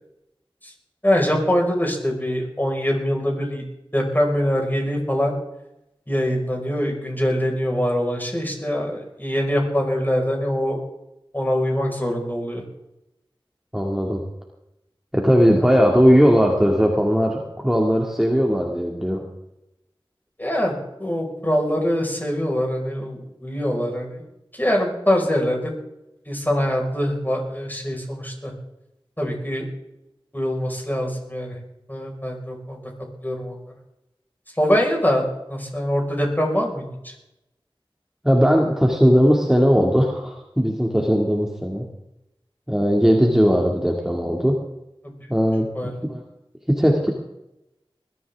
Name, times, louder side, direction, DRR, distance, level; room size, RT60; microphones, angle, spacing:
voice 1, 1.0-3.6 3.9-5.4 6.1-10.8 11.3-12.6 15.5-15.6 20.4-20.7 21.0-24.2 24.5-25.7 26.3-28.5 29.2-29.7 30.3-31.6 31.9-32.8 33.2-33.6 34.6-37.1 45.0-45.1 45.8-46.0, equal, 20° left, 0 dB, 5.2 m, -23 dB
voice 2, 13.7-14.2 15.1-19.2 38.2-41.8 42.7-44.6 45.3-45.7 46.1-46.2 46.7-47.1, equal, 5° right, 0 dB, 2.3 m, -18 dB
21.0 x 13.5 x 3.6 m, 0.88 s
wide cardioid pair, 45°, 9 cm